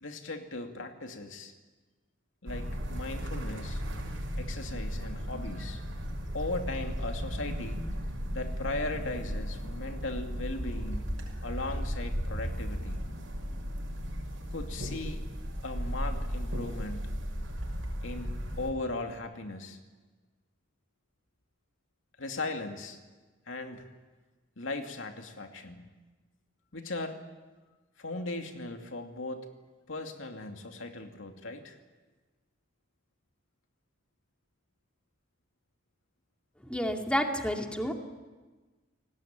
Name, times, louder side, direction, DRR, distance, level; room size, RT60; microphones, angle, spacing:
voice 1, 0.0-1.5 2.4-3.8 4.4-5.8 6.3-7.8 8.3-13.0 14.5-15.2 15.6-17.2 18.0-19.8 22.2-23.0 23.5-23.9 24.6-25.8 26.7-27.2 28.0-29.5 29.9-31.8, left 2 dB, 85° left, 4 dB, 2.5 m, -38 dB
sound 1, 2.5-18.7, equal, 85° right, 6.2 m, -35 dB
voice 2, 36.7-37.9, equal, 5° left, 3 dB, 2.3 m, -30 dB
29.5 x 18.5 x 9.0 m, 1.3 s
head